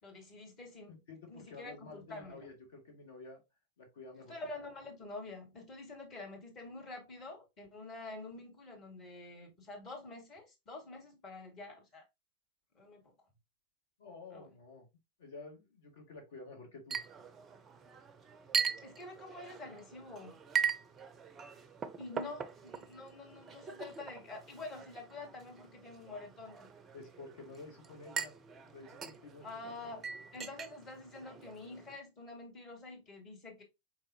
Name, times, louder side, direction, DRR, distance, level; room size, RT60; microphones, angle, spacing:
voice 1, 0.0-0.9 1.3-2.5 4.3-12.0 12.7-13.0 14.3-14.5 18.8-20.4 22.0-26.7 29.4-33.6, left 2 dB, 35° left, 2.3 m, -47 dB
voice 2, 0.9-3.4 3.8-4.4 14.0-14.9 15.2-17.0 22.2-22.4 26.9-28.3 28.6-29.9, left 3 dB, 60° left, 1.6 m, -51 dB
Chink clink, 16.9-32.0, right 6 dB, 20° right, 0.5 m, -41 dB
4.5 x 3.6 x 2.8 m
figure-of-eight pair, 90°, 0 cm